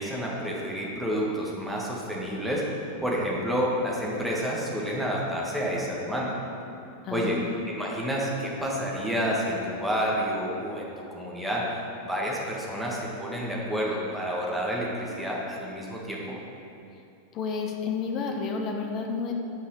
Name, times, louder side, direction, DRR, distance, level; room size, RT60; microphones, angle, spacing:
voice 1, 0.0-2.6 3.0-6.3 7.1-11.6 12.0-16.4, equal, 5° right, -4 dB, 1.9 m, -29 dB
voice 2, 7.0-7.5 17.3-19.3, left 5 dB, 35° left, 2 dB, 1.1 m, -30 dB
9.3 x 5.4 x 6.9 m, 2.7 s
figure-of-eight pair, 90°, 0 cm